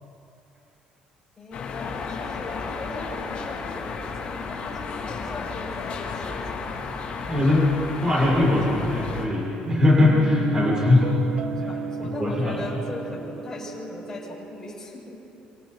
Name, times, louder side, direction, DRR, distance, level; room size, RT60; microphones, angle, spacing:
voice 1, 1.4-6.7 10.5-15.2, left 2 dB, 20° left, -5 dB, 7.0 m, -39 dB
sound 1, 1.5-9.3, left 4 dB, 50° left, 3.2 m, -33 dB
voice 2, 7.3-7.7 8.0-11.1 12.2-12.7, left 2 dB, 25° right, -5 dB, 7.0 m, -20 dB
Guitar, 9.7-14.7, right 5 dB, 50° right, 1.3 m, -32 dB
27.5 x 26.0 x 4.4 m, 2.9 s
cardioid pair, 140°, 3 cm